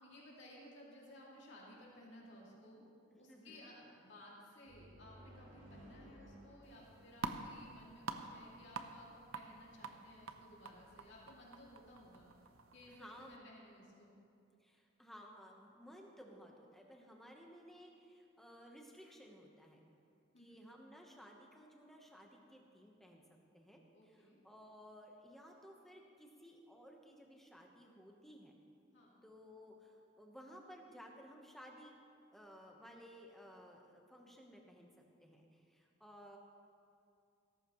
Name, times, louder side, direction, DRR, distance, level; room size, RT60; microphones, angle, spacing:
voice 1, 0.0-2.8 3.1-12.3 12.7-14.1 20.3-20.7 23.9-24.4 28.9-29.2, left 1 dB, 60° left, -5 dB, 2.5 m, -58 dB
voice 2, 3.1-3.7 12.9-13.5 14.6-19.8 20.4-28.5 29.2-32.0 32.3-36.4, equal, ahead, 0 dB, 1.1 m, -57 dB
sound 1, 4.7-8.4, right 1 dB, 55° right, 3.6 m, -59 dB
sound 2, 6.6-13.4, right 4 dB, 85° right, 0.7 m, -48 dB
17.0 x 14.0 x 3.1 m, 2.5 s
head